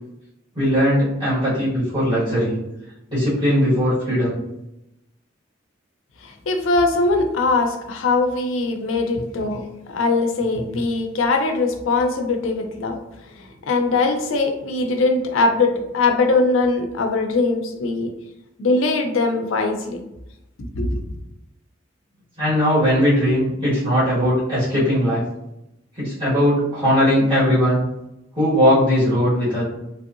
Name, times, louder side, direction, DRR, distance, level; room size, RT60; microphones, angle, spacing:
voice 1, 0.5-2.6 3.1-4.4 22.4-25.2 25.9-27.8 28.3-29.6, equal, 25° right, -11 dB, 1.5 m, -19 dB
voice 2, 6.2-13.0 13.4-18.1 18.6-20.0 20.6-21.0, left 3 dB, 80° left, 5 dB, 0.5 m, -21 dB
3.2 x 2.7 x 2.5 m, 0.89 s
head